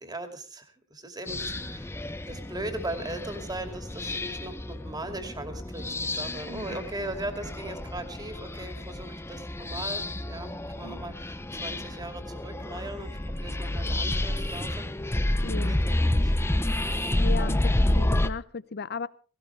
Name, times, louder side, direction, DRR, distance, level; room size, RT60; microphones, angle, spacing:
voice 1, 0.0-1.9 2.3-14.9 15.7-16.7, right 1 dB, 20° right, 7 dB, 2.4 m, -39 dB
sound 1, 1.3-18.3, left 1 dB, 10° left, 0.6 m, -29 dB
voice 2, 6.4-6.8 10.8-11.0 15.4-15.8 17.2-19.1, left 4 dB, 50° left, 17 dB, 0.7 m, -36 dB
17.5 x 17.5 x 3.4 m, 0.37 s
head